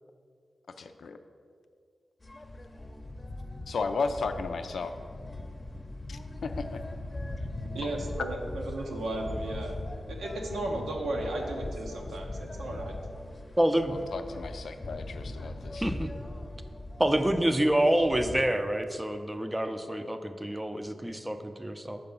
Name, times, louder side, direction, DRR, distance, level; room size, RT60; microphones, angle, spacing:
voice 1, 0.8-1.2 3.7-4.9 6.1-6.8 13.9-15.8, left 4 dB, 75° left, 8 dB, 0.4 m, -34 dB
sound 1, 2.2-18.4, left 1 dB, 35° left, 0.7 m, -40 dB
voice 2, 7.7-9.8 10.1-13.0, right 1 dB, 90° right, 0 dB, 0.9 m, -35 dB
voice 3, 13.6-14.0 15.8-16.1 17.0-22.0, right 1 dB, 15° right, 8 dB, 0.6 m, -27 dB
6.6 x 4.7 x 5.4 m, 2.2 s
cardioid pair, 50°, 0 cm